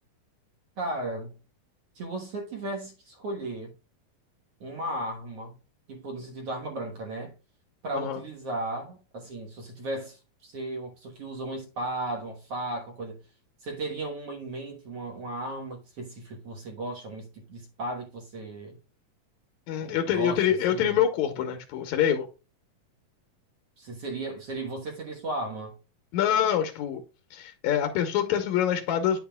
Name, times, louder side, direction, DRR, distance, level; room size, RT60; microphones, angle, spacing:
voice 1, 0.8-1.4 2.0-3.7 4.6-5.6 5.9-7.3 7.8-13.2 13.6-18.8 19.8-21.0 23.8-25.7, right 1 dB, 55° right, 1.8 m, -35 dB
voice 2, 19.7-22.3 26.1-27.0 27.3-29.2, left 9 dB, 70° left, 1.9 m, -25 dB
9.6 x 7.0 x 2.2 m
omnidirectional pair, 4.1 m